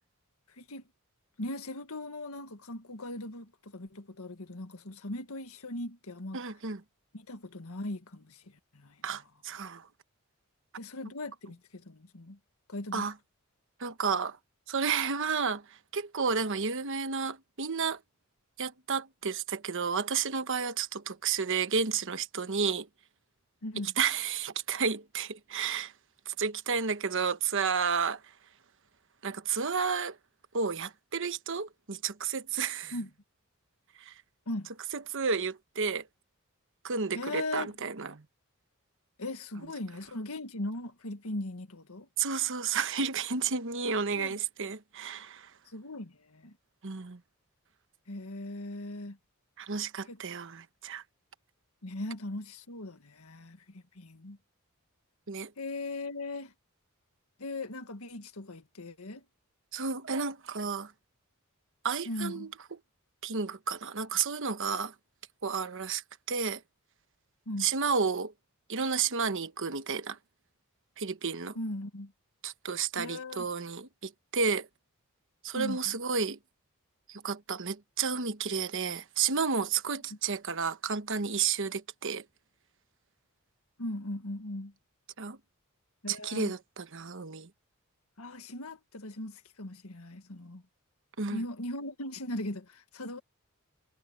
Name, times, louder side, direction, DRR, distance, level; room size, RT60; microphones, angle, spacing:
voice 1, 0.5-0.8 1.4-6.4 7.1-9.2 10.8-12.4 12.7-13.1 23.6-23.9 32.9-33.1 34.5-34.7 37.1-37.7 39.2-42.1 44.2-44.4 45.7-46.6 48.1-49.2 50.1-50.2 51.8-54.4 55.6-56.5 57.4-59.3 62.1-62.5 67.5-67.7 71.6-72.1 73.0-73.5 75.5-76.0 83.8-84.7 86.0-86.5 88.2-90.6 91.3-93.2, left 1 dB, 80° left, 1.8 m, -39 dB
voice 2, 6.3-6.8 9.0-9.9 12.9-13.1 13.8-14.4 14.7-18.0 18.6-22.9 24.0-25.9 26.3-28.2 29.2-30.2 30.5-32.9 34.0-34.1 34.9-36.0 36.8-38.2 42.2-45.5 46.8-47.2 49.6-51.0 55.3-55.5 59.7-60.9 61.8-62.5 63.2-64.9 65.4-66.0 66.3-66.6 67.6-68.3 68.7-70.2 71.0-71.6 72.4-74.7 75.4-76.4 77.1-82.2 85.2-85.4 86.1-87.5 91.2-91.4, right 5 dB, 60° right, 1.1 m, -31 dB
head